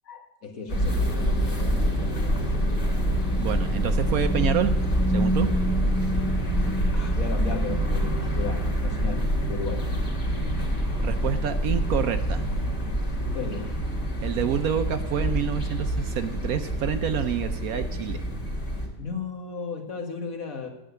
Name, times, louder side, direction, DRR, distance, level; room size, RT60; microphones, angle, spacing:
voice 1, 0.1-2.5 6.9-9.9 13.3-13.7 19.0-20.7, left 5 dB, 60° left, 3 dB, 2.0 m, -35 dB
sound 1, 0.7-18.9, equal, 45° left, 2.6 m, -26 dB
voice 2, 3.4-4.7 5.1-5.5 11.0-12.4 14.2-18.2, right 8 dB, 70° right, 9 dB, 1.1 m, -28 dB
9.4 x 8.8 x 7.9 m, 0.99 s
omnidirectional pair, 1.7 m